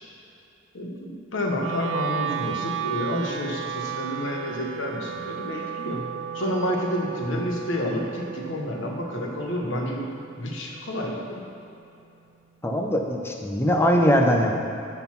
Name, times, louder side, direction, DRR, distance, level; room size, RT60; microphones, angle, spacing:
voice 1, 0.7-11.4, equal, 70° left, 0 dB, 1.2 m, -29 dB
Wind instrument woodwind instrument, 1.6-11.7, right 8 dB, 65° right, 0.4 m, -35 dB
voice 2, 12.6-14.6, equal, 10° left, 1 dB, 0.7 m, -21 dB
10.5 x 4.0 x 5.9 m, 2.8 s
head